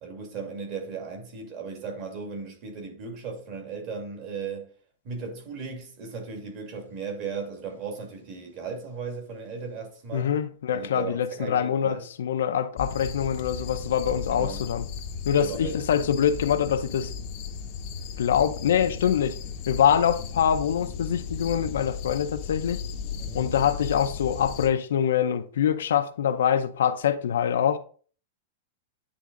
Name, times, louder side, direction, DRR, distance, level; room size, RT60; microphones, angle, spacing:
voice 1, 0.0-4.7 5.0-10.3 10.7-12.0 14.3-14.6 15.4-15.8 23.2-23.5, right 5 dB, 35° right, 2.2 m, -36 dB
voice 2, 10.1-14.9 15.3-17.1 18.2-19.4 19.7-22.8 23.3-27.8, left 8 dB, 90° left, 0.7 m, -24 dB
sound 1, 12.8-24.7, left 6 dB, 40° left, 0.7 m, -36 dB
9.9 x 3.7 x 3.8 m
supercardioid pair, 165°, 0 cm